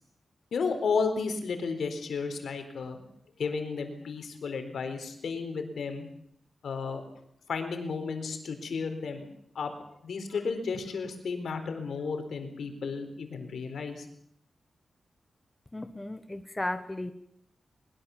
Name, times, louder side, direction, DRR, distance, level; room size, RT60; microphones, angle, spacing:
voice 1, 0.5-3.0 3.4-6.1 6.6-7.0 7.5-9.3 9.5-9.7 10.0-14.1, left 5 dB, 75° left, 7 dB, 4.2 m, -33 dB
voice 2, 15.7-17.1, left 2 dB, 10° left, 9 dB, 1.0 m, -35 dB
22.0 x 22.0 x 7.3 m, 0.72 s
wide cardioid pair, 180°, 0 cm